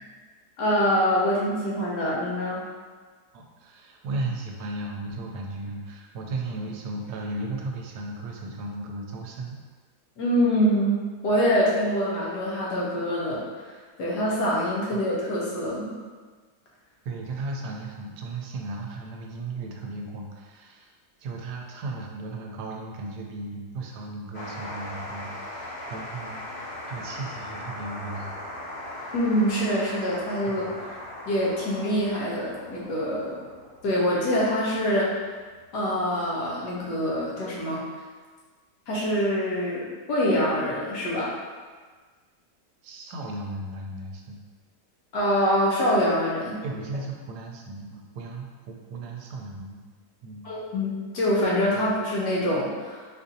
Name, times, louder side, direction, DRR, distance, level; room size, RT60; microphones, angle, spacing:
voice 1, 0.6-2.6 10.2-11.0 11.2-13.6 14.0-15.9 29.1-30.9 31.3-33.4 33.8-35.1 35.7-37.8 38.9-41.3 45.1-46.6 50.4-53.1, equal, 85° left, -5 dB, 1.4 m, -25 dB
voice 2, 3.3-9.6 17.0-20.9 21.2-28.3 30.5-30.8 42.8-44.4 46.6-49.8 50.2-50.5, right 2 dB, 80° right, 0 dB, 1.1 m, -35 dB
sound 1, 24.3-37.3, left 1 dB, 60° left, 0.7 m, -39 dB
4.1 x 2.5 x 2.6 m, 1.4 s
omnidirectional pair, 1.7 m